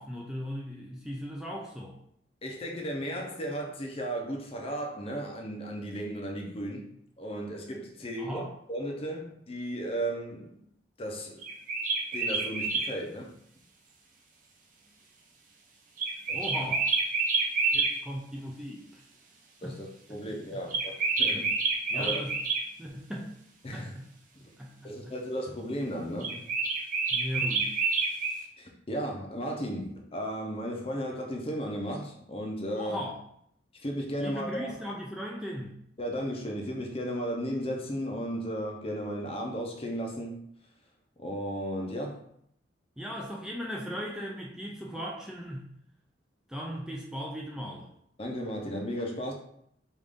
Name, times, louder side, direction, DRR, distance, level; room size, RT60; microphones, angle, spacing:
voice 1, 0.0-2.0 8.2-8.5 16.3-16.9 17.7-19.0 19.6-19.8 20.5-20.6 21.3-21.5 21.9-22.4 22.8-23.3 23.7-24.1 24.6-25.1 27.1-27.7 32.8-33.2 34.2-35.8 43.0-45.7 46.5-47.9, equal, 5° right, 0.4 m, -38 dB
voice 2, 2.4-6.9 7.2-8.4 8.7-10.6 11.0-11.5 12.1-13.3 16.3-16.4 19.6-21.5 21.9-22.2 23.6-23.9 24.4-24.5 24.8-26.4 28.6-33.0 33.8-34.7 36.0-40.4 41.2-42.2 48.2-49.3, equal, 35° left, 0.7 m, -35 dB
sound 1, 11.4-12.9 16.0-17.9 20.7-22.6 26.2-28.4, right 4 dB, 45° right, 0.7 m, -28 dB
5.1 x 2.6 x 3.6 m
head